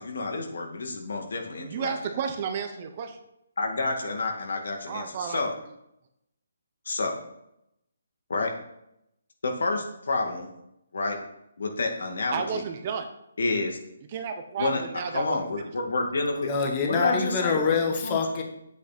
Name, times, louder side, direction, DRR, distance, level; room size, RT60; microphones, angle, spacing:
voice 1, 0.0-1.9 3.6-5.5 6.9-7.2 8.3-8.5 9.4-10.5 10.9-11.2 11.6-12.6 13.4-13.8 14.6-14.8 15.1-16.5 16.8-18.2, left 3 dB, 70° left, 3 dB, 2.2 m, -29 dB
voice 2, 1.6-3.2 4.9-5.5 12.3-13.1 14.1-15.4, right 6 dB, 30° right, 7 dB, 0.8 m, -32 dB
voice 3, 16.4-18.4, left 5 dB, 20° left, 2 dB, 1.3 m, -25 dB
8.2 x 8.0 x 4.3 m, 0.81 s
hypercardioid pair, 170°, 0 cm